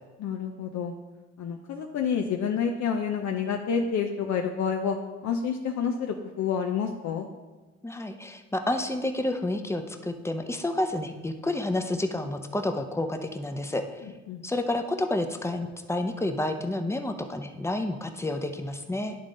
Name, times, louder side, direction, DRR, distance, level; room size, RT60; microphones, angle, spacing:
voice 1, 0.2-0.9 1.4-5.0 5.2-7.3 14.3-14.4, left 6 dB, 65° left, 3 dB, 0.6 m, -28 dB
voice 2, 7.8-13.8 14.4-19.2, left 1 dB, 10° left, 6 dB, 0.6 m, -30 dB
11.0 x 3.7 x 3.8 m, 1.2 s
cardioid pair, 90°, 30 cm